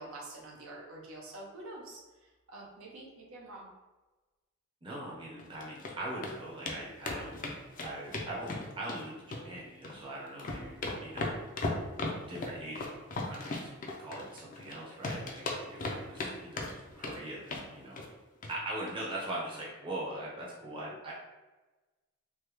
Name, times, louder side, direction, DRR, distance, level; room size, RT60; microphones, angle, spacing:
voice 1, 0.0-2.0 2.5-3.7, right 2 dB, 75° right, -3 dB, 0.7 m, -46 dB
voice 2, 4.8-7.4 7.8-10.7 11.0-11.4 12.3-13.0 13.2-13.7 14.0-18.0 18.5-21.1, right 1 dB, 25° right, -5 dB, 0.7 m, -41 dB
sound 1, 5.4-5.9 6.2-6.3 6.7-6.8 7.0-9.0 9.3-10.0 10.3-14.7 15.0-16.3 16.6-17.2 17.5-17.7 18.0-18.1 18.4-18.5 18.8-18.9, left 2 dB, 40° left, 0.4 m, -36 dB
3.3 x 2.1 x 3.0 m, 1.2 s
head